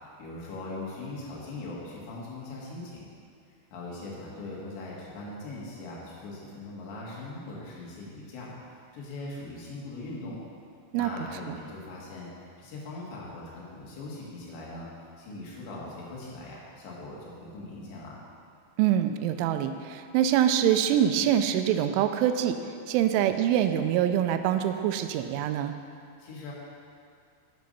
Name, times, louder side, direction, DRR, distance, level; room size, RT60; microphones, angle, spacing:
voice 1, 0.2-3.0 3.7-8.5 8.9-10.4 10.9-14.9 15.2-18.2 26.2-26.5, left 2 dB, 70° left, -4 dB, 3.9 m, -40 dB
voice 2, 18.8-22.6 22.9-25.7, right 10 dB, 90° right, 8 dB, 3.1 m, -24 dB
10.5 x 7.7 x 5.4 m, 2.3 s
omnidirectional pair, 5.5 m